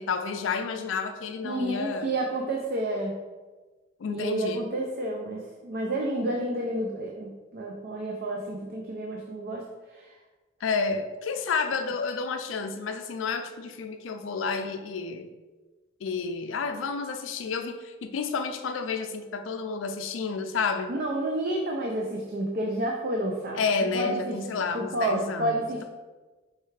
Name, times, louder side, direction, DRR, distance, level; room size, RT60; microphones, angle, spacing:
voice 1, 0.0-2.1 4.0-4.6 10.6-15.3 16.0-20.9 23.5-25.8, left 5 dB, 80° left, 7 dB, 0.4 m, -30 dB
voice 2, 1.4-3.2 4.1-9.7 9.9-10.1 20.9-23.6 23.9-25.8, right 1 dB, 55° right, 0 dB, 0.4 m, -30 dB
4.6 x 3.2 x 3.2 m, 1.2 s
head